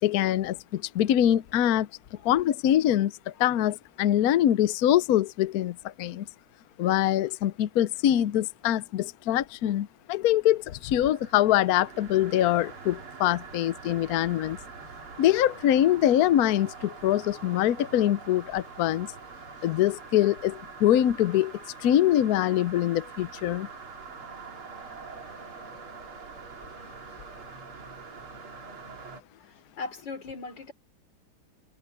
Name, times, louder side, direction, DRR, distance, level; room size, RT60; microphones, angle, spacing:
voice 1, 0.0-1.9 2.2-6.2 6.8-14.6 15.2-19.1 19.6-21.5 21.8-23.7, left 12 dB, 80° left, 0.8 m, -24 dB
sound 1, 10.5-29.2, right 5 dB, 75° right, 3.5 m, -44 dB
voice 2, 29.8-30.7, left 4 dB, 55° left, 4.2 m, -37 dB
omnidirectional pair, 2.4 m